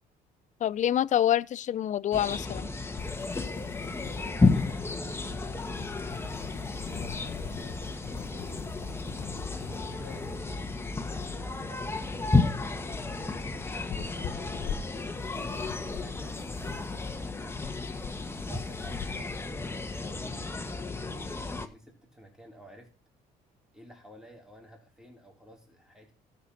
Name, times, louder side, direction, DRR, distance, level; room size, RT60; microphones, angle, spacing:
voice 1, 0.6-2.7, left 11 dB, 45° left, 0.5 m, -26 dB
sound 1, 2.1-21.7, left 3 dB, 15° left, 1.4 m, -32 dB
sound 2, 2.9-20.0, left 8 dB, 65° left, 1.5 m, -43 dB
voice 2, 3.9-5.5 6.7-8.8 9.6-10.4 10.8-14.8 15.2-17.9 18.4-20.2 20.5-22.9 23.7-26.1, equal, 5° right, 4.0 m, -52 dB
12.5 x 6.6 x 5.7 m
cardioid pair, 110°, 17 cm